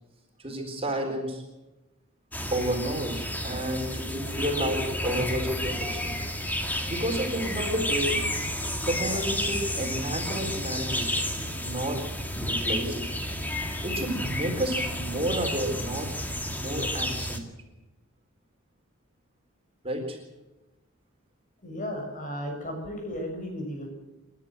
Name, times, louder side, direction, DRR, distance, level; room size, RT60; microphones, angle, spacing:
voice 1, 0.4-1.4 2.5-6.2 6.9-8.2 8.9-11.1 11.6-12.0 12.5-13.0 13.8-16.1 16.6-17.5 19.8-20.2, right 1 dB, 30° right, 2 dB, 4.0 m, -31 dB
sound 1, 2.3-17.4, left 1 dB, 10° left, 2.2 m, -31 dB
voice 2, 21.6-23.9, equal, 40° left, 2 dB, 7.1 m, -34 dB
29.5 x 11.5 x 7.8 m, 1.1 s
head